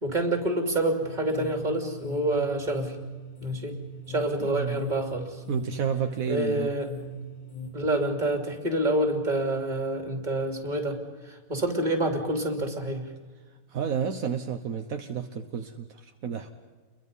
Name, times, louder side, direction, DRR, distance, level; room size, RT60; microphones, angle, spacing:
voice 1, 0.0-3.0 3.4-3.8 4.1-5.4 6.3-6.9 7.7-13.0, right 1 dB, 30° right, 3 dB, 3.2 m, -27 dB
sound 1, 1.0-7.7, right 1 dB, 65° left, 4.3 m, -40 dB
voice 2, 4.4-4.8 5.5-6.7 13.7-16.5, right 7 dB, 75° right, 5 dB, 1.5 m, -31 dB
30.0 x 22.5 x 5.5 m, 1.4 s
omnidirectional pair, 1.5 m